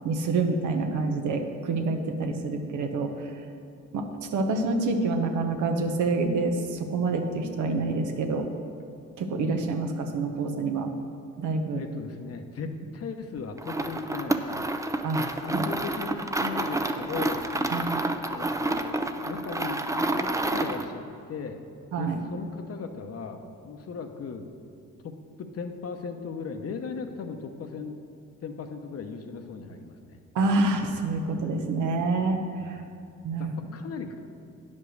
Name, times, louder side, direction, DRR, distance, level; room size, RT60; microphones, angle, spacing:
voice 1, 0.0-3.4 3.9-8.5 9.2-10.9 11.4-11.8 15.0-15.6 17.7-18.1 21.9-22.2 30.3-32.8 33.2-33.5, right 3 dB, 75° right, 5 dB, 1.1 m, -27 dB
voice 2, 11.7-14.7 15.4-17.9 18.3-21.6 22.0-23.4 23.6-24.5 25.0-28.0 28.4-30.2 32.6-32.9 33.4-34.2, left 5 dB, 55° left, 6 dB, 0.9 m, -37 dB
sound 1, 13.6-20.9, right 2 dB, 10° right, 0.5 m, -29 dB
9.5 x 5.5 x 6.4 m, 2.5 s
cardioid pair, 90°, 30 cm